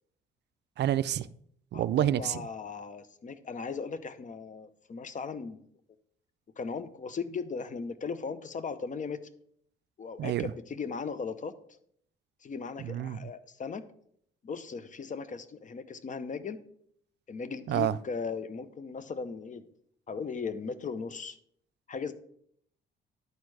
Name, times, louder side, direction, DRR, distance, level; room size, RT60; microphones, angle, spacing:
voice 1, 0.8-1.3 1.7-2.4 10.2-10.5 12.8-13.3 17.7-18.0, right 12 dB, 60° right, 0.4 m, -28 dB
voice 2, 1.7-5.6 6.6-9.2 10.0-11.5 12.4-13.8 14.4-16.6 17.3-19.6 20.1-21.4 21.9-22.1, left 5 dB, 40° left, 0.7 m, -37 dB
11.0 x 4.4 x 4.8 m
cardioid pair, 90°, 20 cm